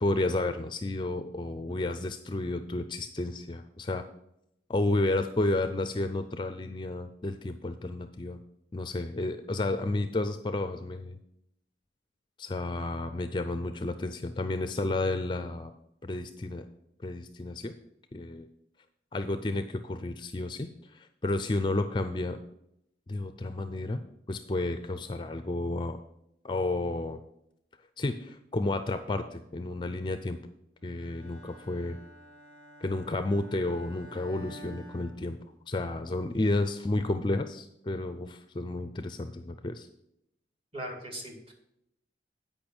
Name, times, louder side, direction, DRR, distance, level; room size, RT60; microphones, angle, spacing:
voice 1, 0.0-4.1 4.7-8.4 8.7-11.2 12.4-15.7 16.0-16.6 17.0-17.7 18.1-18.5 19.1-22.4 23.1-24.0 24.3-26.0 26.4-27.2 28.0-30.4 30.8-32.0 32.8-35.4 35.7-39.9, left 2 dB, 25° left, 9 dB, 0.4 m, -31 dB
Bowed string instrument, 31.0-35.9, right 1 dB, 65° right, 2.3 m, -51 dB
voice 2, 40.7-41.5, right 1 dB, 30° right, 1 dB, 2.1 m, -39 dB
8.8 x 5.4 x 6.0 m, 0.79 s
head